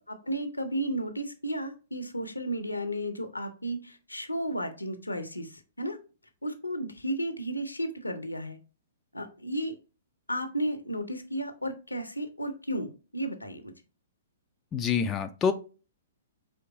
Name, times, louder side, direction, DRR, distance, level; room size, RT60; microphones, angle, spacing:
voice 1, 0.0-6.0 6.4-8.6 9.1-9.7 10.3-12.9 13.1-13.7, right 1 dB, 85° left, 8 dB, 0.8 m, -33 dB
voice 2, 14.7-15.5, left 6 dB, 20° left, 7 dB, 0.4 m, -26 dB
4.5 x 3.3 x 3.5 m, 0.34 s
figure-of-eight pair, 115°, 0 cm